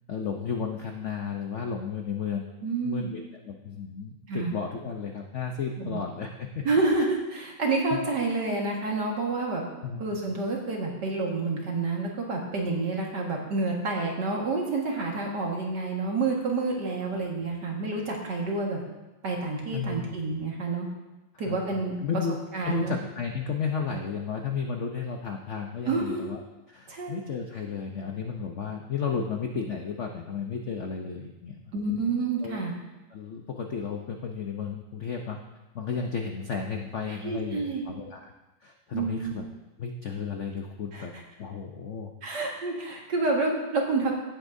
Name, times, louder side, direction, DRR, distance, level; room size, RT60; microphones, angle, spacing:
voice 1, 0.1-2.5 2.8-6.7 7.9-8.0 9.8-10.0 19.7-20.1 21.5-21.6 22.0-26.4 26.7-31.6 32.4-32.7 33.1-35.4 35.7-38.3 38.6-39.4 39.8-41.1 41.4-42.1, left 6 dB, 70° left, 3 dB, 0.6 m, -33 dB
voice 2, 2.6-3.1 4.3-4.5 5.8-6.0 6.6-9.7 10.0-18.8 19.2-20.9 21.4-22.0 22.5-23.0 25.8-26.3 26.9-27.2 31.7-32.7 37.2-37.8 38.9-39.4 40.9-41.1 42.2-44.1, right 3 dB, 55° right, -1 dB, 2.2 m, -28 dB
17.0 x 8.3 x 2.7 m, 1.1 s
omnidirectional pair, 2.2 m